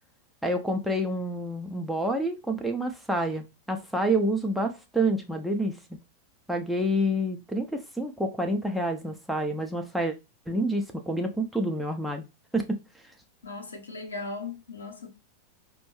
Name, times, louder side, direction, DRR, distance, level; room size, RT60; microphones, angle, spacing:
voice 1, 0.4-5.8 6.5-10.1 10.5-12.2 12.5-12.8, right 1 dB, ahead, 0.6 m, -28 dB
voice 2, 13.4-15.1, left 3 dB, 75° left, 1.0 m, -37 dB
5.1 x 2.2 x 3.1 m
figure-of-eight pair, 90°, 0 cm